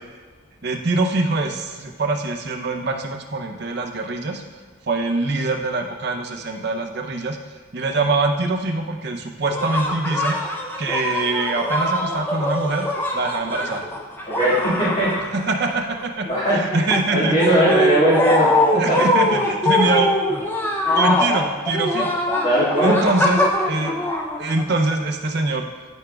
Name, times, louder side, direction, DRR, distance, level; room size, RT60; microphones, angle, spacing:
voice 1, 0.6-4.4 4.9-7.4 7.7-10.4 10.8-12.9 13.1-13.8 15.3-18.1 18.7-20.1 20.9-22.2 22.8-24.1 24.4-25.7, right 2 dB, 50° right, 3 dB, 0.6 m, -24 dB
sound 1, 9.5-15.7 16.0-25.0, left 1 dB, 10° left, 0.5 m, -22 dB
voice 2, 14.3-15.1 16.3-16.6 17.1-19.0 22.4-23.1, right 1 dB, 40° left, -12 dB, 1.8 m, -19 dB
12.0 x 5.0 x 2.3 m, 1.4 s
head